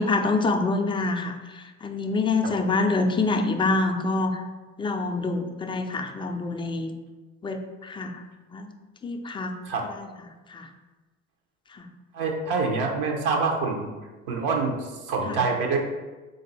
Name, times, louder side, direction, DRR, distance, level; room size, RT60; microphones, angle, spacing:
voice 1, 0.0-4.4 4.8-6.9 7.4-8.2 8.5-8.7 9.0-9.6 9.9-10.1 10.5-10.7 11.7-11.9 15.3-15.4, left 3 dB, 15° left, 4 dB, 0.3 m, -26 dB
voice 2, 12.1-13.9 14.3-15.8, right 4 dB, 75° right, 1 dB, 0.8 m, -26 dB
3.7 x 2.6 x 3.9 m, 1.2 s
hypercardioid pair, 60°, 37 cm